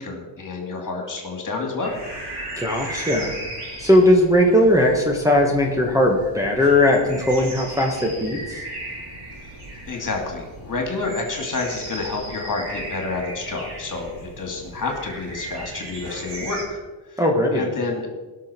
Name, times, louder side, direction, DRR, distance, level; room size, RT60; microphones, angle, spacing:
voice 1, 0.0-2.0 9.4-9.5 9.9-16.8 17.0-17.2 17.5-18.1, left 3 dB, 40° left, 2 dB, 2.7 m, -29 dB
sound 1, 1.8-16.6, right 1 dB, 55° right, 4.1 m, -36 dB
voice 2, 2.6-3.3 3.8-8.6 17.2-17.7, left 1 dB, 5° right, -2 dB, 1.5 m, -18 dB
18.5 x 6.5 x 4.5 m, 1.3 s
cardioid pair, 110°, 46 cm